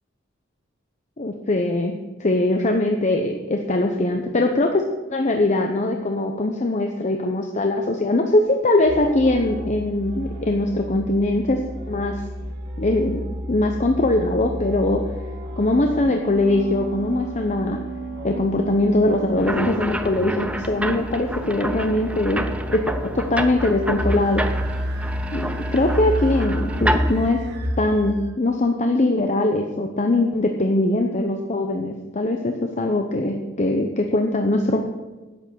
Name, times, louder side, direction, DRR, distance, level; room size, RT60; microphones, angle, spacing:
voice 1, 1.2-4.8 5.1-11.6 11.9-12.2 12.8-15.0 15.6-17.8 18.2-22.8 23.1-24.4 25.3-27.4 27.8-34.8, left 2 dB, 40° left, 3 dB, 0.8 m, -21 dB
sound 1, 8.9-28.3, equal, 60° right, 1.7 m, -30 dB
sound 2, 19.4-27.3, right 1 dB, 5° right, 0.6 m, -29 dB
11.0 x 8.1 x 6.9 m, 1.2 s
head